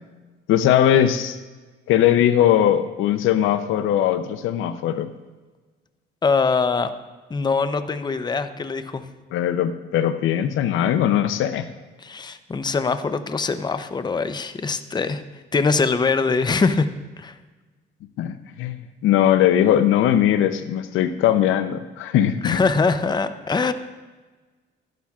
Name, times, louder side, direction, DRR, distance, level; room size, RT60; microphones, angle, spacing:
voice 1, 0.5-1.4 1.9-5.1 9.3-11.6 18.2-18.8 19.0-22.6, left 10 dB, 85° left, 11 dB, 0.6 m, -20 dB
voice 2, 6.2-6.9 7.3-9.0 12.0-15.2 15.5-16.9 17.2-17.3 22.4-23.7, left 4 dB, 20° left, 11 dB, 0.6 m, -22 dB
12.5 x 11.5 x 2.4 m, 1.3 s
cardioid pair, 90°, 20 cm